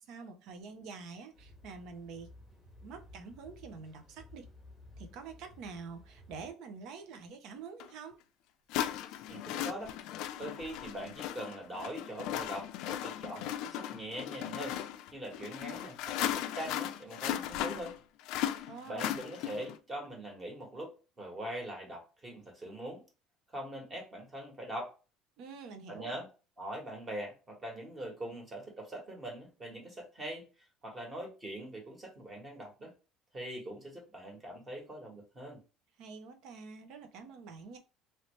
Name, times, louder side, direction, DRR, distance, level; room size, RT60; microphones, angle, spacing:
voice 1, 0.1-2.3 2.8-4.5 5.0-8.2 18.7-19.2 25.4-26.2 36.0-37.8, right 5 dB, 60° right, 0.7 m, -47 dB
sound 1, 1.3-6.5, left 1 dB, 5° left, 1.1 m, -55 dB
sound 2, 7.8-7.9 8.7-19.8, left 11 dB, 65° left, 0.4 m, -37 dB
voice 2, 9.3-10.0 10.4-18.0 18.6-23.0 23.5-24.9 25.9-26.3 26.6-30.5 30.8-32.9 33.3-35.6, right 1 dB, 20° right, 1.4 m, -42 dB
3.1 x 2.8 x 3.1 m
cardioid pair, 150°, 0 cm